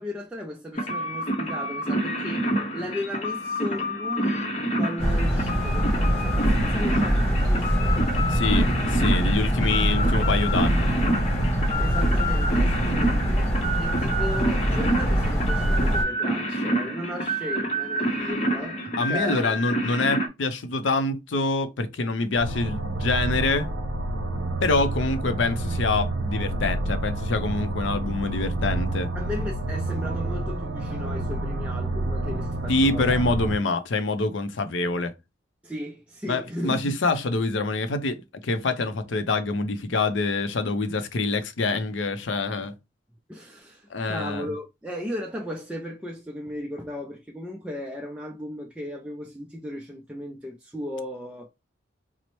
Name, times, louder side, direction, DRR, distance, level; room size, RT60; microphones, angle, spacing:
voice 1, 0.0-8.1 11.8-19.6 29.1-33.2 35.6-37.0 43.3-51.5, left 1 dB, 5° right, 0.3 m, -36 dB
sound 1, 0.7-20.3, right 1 dB, 35° left, 0.7 m, -28 dB
sound 2, 5.0-16.0, equal, 15° left, 1.2 m, -23 dB
voice 2, 8.3-10.9 19.0-23.7 24.6-29.1 32.7-35.1 36.3-42.7 43.9-44.5, left 3 dB, 75° left, 0.6 m, -26 dB
sound 3, 22.3-33.6, right 2 dB, 75° right, 0.7 m, -29 dB
4.1 x 2.0 x 3.0 m
head